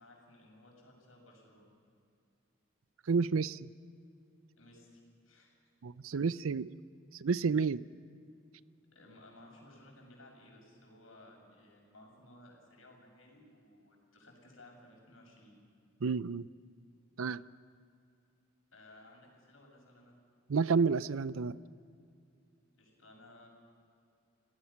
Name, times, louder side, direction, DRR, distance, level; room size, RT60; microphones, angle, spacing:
voice 1, 0.0-1.7 4.6-5.5 8.9-15.6 18.7-20.1 22.8-23.5, left 1 dB, 85° left, 0 dB, 6.7 m, -58 dB
voice 2, 3.1-3.7 5.8-6.7 7.2-7.8 16.0-16.5 17.2-17.4 20.5-21.6, right 5 dB, 85° right, 17 dB, 0.5 m, -30 dB
29.0 x 18.5 x 5.9 m, 2.5 s
head